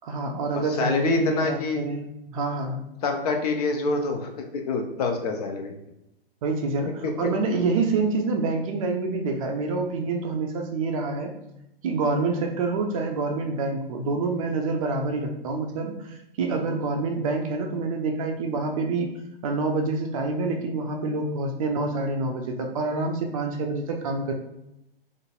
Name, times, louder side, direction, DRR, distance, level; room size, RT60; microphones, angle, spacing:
voice 1, 0.0-2.8 6.4-11.3 11.8-19.1 19.4-24.3, right 3 dB, 35° right, 3 dB, 0.5 m, -27 dB
voice 2, 0.8-1.8 3.0-5.7 7.0-7.1, left 3 dB, 40° left, 4 dB, 0.5 m, -26 dB
3.8 x 2.5 x 2.4 m, 0.86 s
figure-of-eight pair, 110°, 29 cm